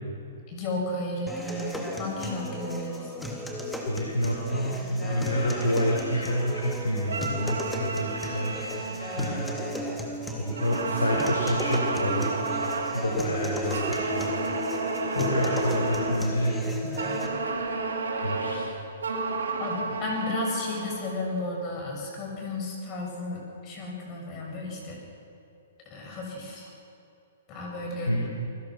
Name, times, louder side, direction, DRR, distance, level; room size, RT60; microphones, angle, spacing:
voice 1, 0.5-3.1 19.6-25.0 25.9-26.7 27.5-28.2, left 2 dB, 30° left, 0 dB, 7.3 m, -33 dB
sound 1, 1.3-17.3, left 1 dB, 5° left, 3.3 m, -35 dB
voice 2, 3.9-8.5 9.0-9.5 10.4-12.6 12.9-14.3 15.1-17.0 18.2-18.6 19.0-19.2 19.8-20.0 28.1-28.3, equal, 75° left, -2 dB, 5.1 m, -28 dB
sound 2, 7.1-10.1 10.5-13.1 13.7-16.3 17.0-21.2, right 4 dB, 70° right, 3.0 m, -32 dB
29.0 x 21.5 x 6.2 m, 2.8 s
figure-of-eight pair, 115°, 0 cm